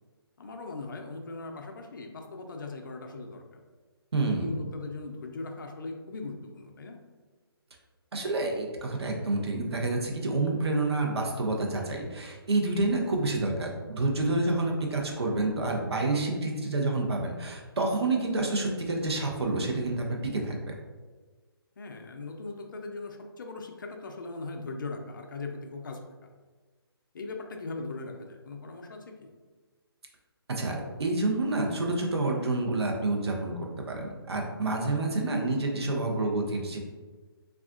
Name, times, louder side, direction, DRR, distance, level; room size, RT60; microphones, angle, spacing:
voice 1, 0.4-3.6 4.2-7.0 14.2-14.5 21.8-26.0 27.1-29.3, left 3 dB, 55° left, 3 dB, 0.4 m, -39 dB
voice 2, 4.1-4.5 8.1-20.7 30.5-36.8, right 2 dB, 80° right, 1 dB, 0.7 m, -28 dB
3.5 x 2.4 x 2.4 m, 1.4 s
hypercardioid pair, 160°, 13 cm